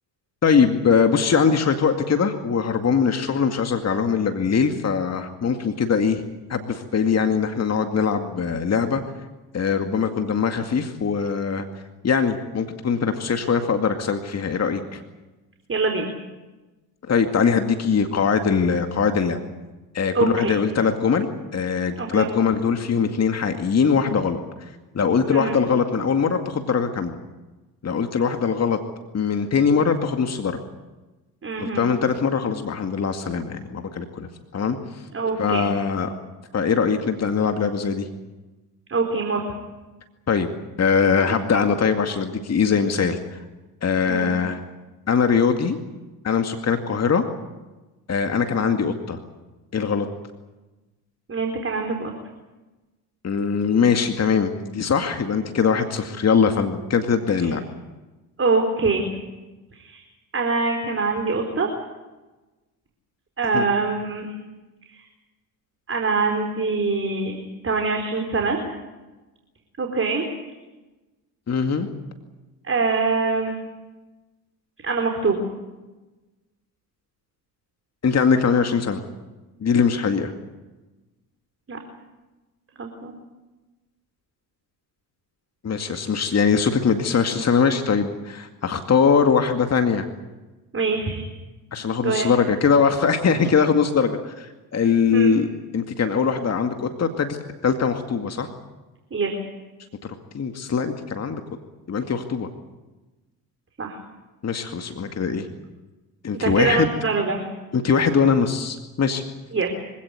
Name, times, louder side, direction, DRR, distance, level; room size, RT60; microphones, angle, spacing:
voice 1, 0.4-6.2 6.5-9.0 9.5-11.7 12.0-15.0 17.1-19.4 19.9-21.3 21.5-24.4 24.9-27.2 27.8-28.8 29.1-30.6 31.6-34.8 35.4-36.1 36.5-38.1 40.3-40.5 40.8-43.2 43.8-44.6 45.1-45.8 46.2-47.2 48.1-49.2 49.7-50.1 53.2-57.6 63.5-63.6 71.5-71.9 78.0-79.0 79.6-80.3 85.6-90.1 91.7-95.5 95.7-97.4 97.6-98.5 100.3-101.4 101.9-102.5 104.4-105.5 106.2-106.9 107.7-109.2, left 6 dB, 30° left, 6 dB, 2.2 m, -21 dB
voice 2, 15.7-16.1 20.1-20.5 22.0-22.3 25.3-25.6 31.4-31.9 35.1-35.6 38.9-39.4 44.1-44.3 51.3-52.1 57.4-57.5 58.4-59.2 59.7-60.0 60.3-61.7 63.4-64.3 64.9-65.0 65.9-67.4 67.6-68.6 69.8-70.3 72.6-73.6 74.8-75.4 81.7-81.8 82.8-83.1 90.7-91.3 92.0-92.3 94.8-95.3 99.1-99.4 103.8-104.0 106.4-107.5 109.5-109.7, right 4 dB, 25° right, 3 dB, 4.3 m, -24 dB
25.5 x 17.0 x 9.6 m, 1.1 s
hypercardioid pair, 60°, 48 cm